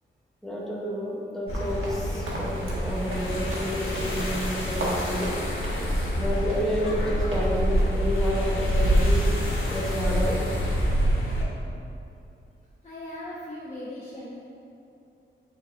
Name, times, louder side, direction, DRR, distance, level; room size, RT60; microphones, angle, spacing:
voice 1, 0.4-5.4 6.2-9.3 9.7-10.4, equal, ahead, -4 dB, 0.9 m, -30 dB
sound 1, 1.5-11.5, equal, 85° left, 1.2 m, -26 dB
sound 2, 1.5-7.5 7.8-8.0 8.3-8.5 8.9-9.0 9.5-9.8, right 1 dB, 75° right, 1.3 m, -37 dB
voice 2, 12.8-14.4, left 1 dB, 30° left, -9 dB, 1.0 m, -38 dB
8.7 x 4.1 x 3.5 m, 2.7 s
wide cardioid pair, 140°, 20 cm